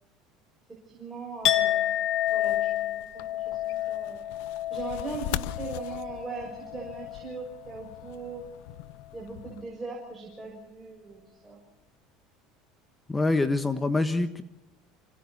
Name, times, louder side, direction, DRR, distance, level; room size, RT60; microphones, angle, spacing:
voice 1, 0.9-1.9 2.3-3.1 3.3-4.3 4.7-8.5 9.1-11.6, right 4 dB, 10° right, -2 dB, 6.3 m, -40 dB
Chink clink, 1.4-7.4 7.7-8.1, left 12 dB, 50° left, 1.9 m, -30 dB
sound 1, 2.3-9.6, left 15 dB, 80° left, 0.8 m, -41 dB
voice 2, 13.1-14.4, left 2 dB, 10° left, 9 dB, 1.4 m, -25 dB
27.5 x 27.0 x 4.2 m, 0.93 s
cardioid pair, 135°, 0 cm